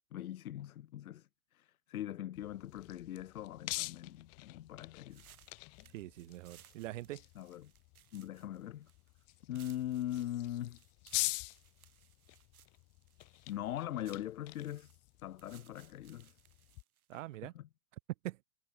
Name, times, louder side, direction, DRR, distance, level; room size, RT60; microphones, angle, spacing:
voice 1, 0.1-5.2 7.4-7.7 8.1-8.9 9.5-10.8 13.5-16.4 17.1-17.7, left 12 dB, 80° left, 2.6 m, -41 dB
sound 1, 2.4-16.8, left 27 dB, 35° left, 2.2 m, -45 dB
sound 2, 5.1-17.2, right 11 dB, 90° right, 6.2 m, -64 dB
voice 2, 5.9-7.2 17.1-17.5 18.2-18.4, right 16 dB, 60° right, 2.2 m, -43 dB
supercardioid pair, 155°, 42 cm